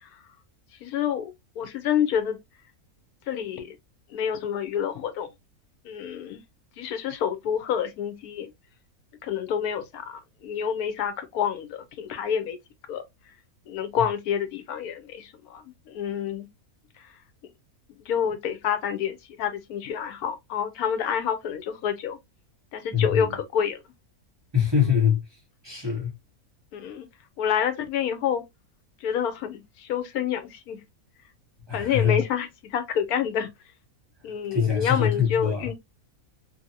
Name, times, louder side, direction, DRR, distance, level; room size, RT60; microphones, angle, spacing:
voice 1, 0.8-2.4 3.3-3.8 4.1-5.3 5.8-6.4 6.8-8.5 9.2-12.6 12.9-13.0 13.7-16.5 17.0-17.1 18.0-22.2 22.7-23.8 26.7-27.1 27.4-28.4 29.0-30.8 31.7-33.5 34.2-35.7, left 8 dB, 80° left, 1.1 m, -28 dB
voice 2, 22.9-23.4 24.5-26.1 31.7-32.2 34.5-35.7, left 8 dB, 20° right, 1.0 m, -24 dB
2.7 x 2.5 x 2.6 m
omnidirectional pair, 1.6 m